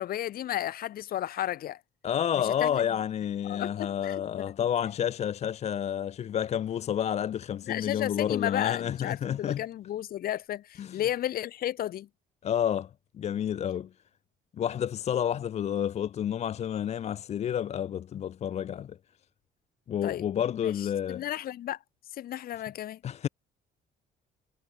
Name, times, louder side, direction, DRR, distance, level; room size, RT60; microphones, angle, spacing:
voice 1, 0.0-1.8 2.4-2.8 3.5-4.4 7.7-12.1 20.0-20.2 20.8-21.8 22.1-23.0, left 12 dB, 60° left, 2.0 m, -33 dB
voice 2, 2.0-9.6 10.8-11.0 12.4-12.9 13.1-13.9 14.5-19.0 19.9-21.2 23.0-23.3, left 9 dB, 40° left, 0.5 m, -30 dB
cardioid pair, 110°, 17 cm